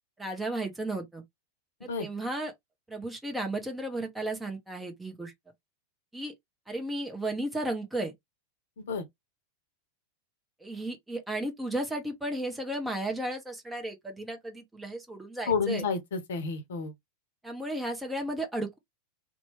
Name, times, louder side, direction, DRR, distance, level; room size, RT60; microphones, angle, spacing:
voice 1, 0.2-1.2 1.8-2.5 2.9-5.3 6.1-6.3 6.7-8.1 10.6-15.8 17.4-18.8, right 1 dB, 5° right, 0.9 m, -34 dB
voice 2, 15.5-16.9, left 5 dB, 60° left, 0.7 m, -30 dB
2.9 x 2.2 x 3.0 m
figure-of-eight pair, 90°, 0 cm